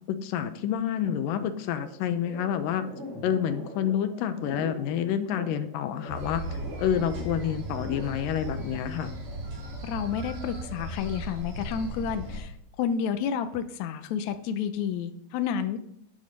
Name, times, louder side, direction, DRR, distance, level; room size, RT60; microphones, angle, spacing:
voice 1, 0.1-2.9 3.2-6.4 6.8-9.1, left 9 dB, 85° left, 10 dB, 2.5 m, -28 dB
sound 1, 1.0-8.6, equal, 20° right, 3.0 m, -42 dB
sound 2, 6.1-12.4, right 1 dB, 75° right, 4.4 m, -37 dB
voice 2, 9.8-12.5 12.8-15.8, left 7 dB, 70° left, 9 dB, 2.0 m, -30 dB
10.0 x 7.6 x 5.3 m, 0.71 s
omnidirectional pair, 3.8 m